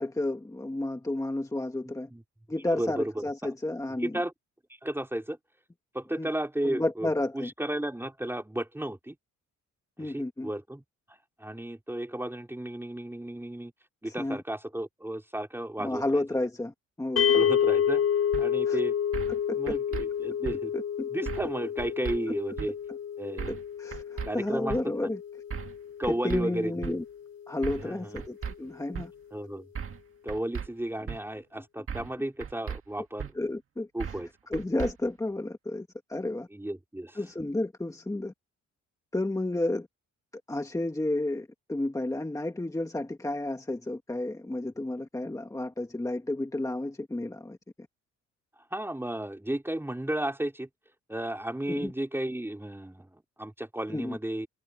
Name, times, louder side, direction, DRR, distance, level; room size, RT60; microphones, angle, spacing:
voice 1, 0.0-2.1 2.5-4.2 6.2-6.3 6.6-7.5 10.0-10.5 14.0-14.4 15.8-17.4 18.6-18.8 19.3-19.8 20.7-21.1 23.5-25.2 26.1-27.0 27.5-29.1 33.3-33.9 34.5-36.5 37.1-38.3 39.1-39.9 40.5-47.6 51.7-51.9 53.9-54.2, left 2 dB, 10° left, 1.6 m, -31 dB
voice 2, 2.7-3.5 4.0-4.3 4.8-5.4 5.9-7.1 7.3-9.2 10.0-10.8 11.4-13.7 14.0-16.2 17.2-18.0 18.4-19.0 19.6-20.7 21.1-22.8 23.2-23.5 24.2-24.8 26.0-27.0 27.8-28.2 29.3-29.7 30.2-33.3 33.9-34.3 36.5-37.2 48.7-50.7 51.1-53.1 53.4-54.5, right 1 dB, 10° right, 3.7 m, -33 dB
sound 1, 17.2-27.5, left 8 dB, 50° left, 4.2 m, -29 dB
sound 2, 18.3-18.5 19.1-19.4 19.7-20.0 20.4-20.6 21.3-21.5 21.8-22.2 22.6-22.7 23.4-23.7 23.9-24.3 24.7-24.8 25.5-25.8 26.0-26.4 26.8-26.9 27.6-27.9 28.2-28.5 28.9-29.1 29.8-30.0 30.3-30.7 31.1-31.2 31.9-32.1 32.4-32.8 33.2-33.3 34.0-34.3 34.5-34.9, right 7 dB, 45° right, 2.0 m, -36 dB
cardioid pair, 90°, 30 cm